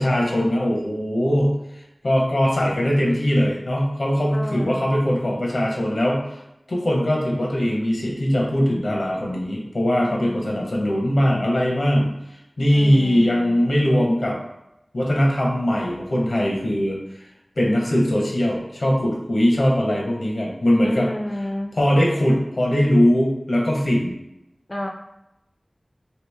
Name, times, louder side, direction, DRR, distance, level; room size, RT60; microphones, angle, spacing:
voice 1, 0.0-1.5 2.0-6.2 6.7-12.1 12.6-14.4 14.9-17.0 17.6-21.1 21.8-24.2, equal, 90° left, -2 dB, 0.8 m, -20 dB
voice 2, 4.3-4.9 10.0-10.6 12.7-13.7 20.8-21.8 24.7-24.9, left 1 dB, 35° left, 1 dB, 0.4 m, -31 dB
2.9 x 2.8 x 3.4 m, 0.88 s
wide cardioid pair, 40°, 0 cm